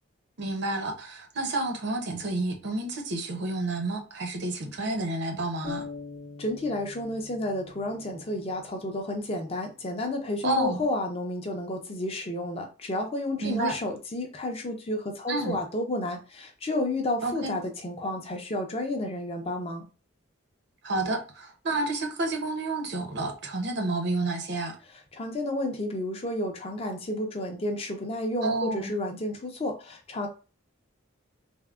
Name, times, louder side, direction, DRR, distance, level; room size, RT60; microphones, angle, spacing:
voice 1, 0.4-5.9 10.4-10.8 13.4-13.8 15.3-15.6 17.2-17.6 20.8-24.8 28.4-28.9, right 2 dB, 55° right, 0.6 m, -30 dB
sound 1, 5.6-9.4, left 4 dB, 45° left, 0.8 m, -43 dB
voice 2, 6.4-19.8 25.1-30.3, left 1 dB, 30° left, 0.4 m, -31 dB
3.4 x 2.0 x 2.3 m
head